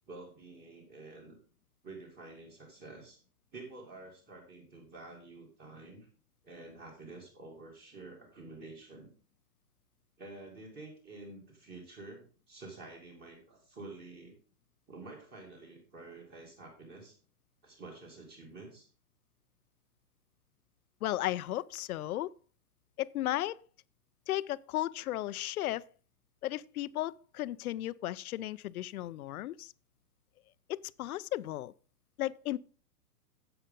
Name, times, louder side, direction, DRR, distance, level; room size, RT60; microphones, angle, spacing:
voice 1, 0.1-1.4 1.8-3.2 3.5-6.1 6.4-9.1 10.2-14.4 14.9-17.2 17.6-18.9, right 3 dB, 20° right, 2.4 m, -49 dB
voice 2, 21.0-22.3 23.0-23.6 24.3-25.8 26.4-29.7 30.7-31.7 32.2-32.6, left 14 dB, 70° left, 0.5 m, -35 dB
10.0 x 8.0 x 3.7 m
hypercardioid pair, 150°, 46 cm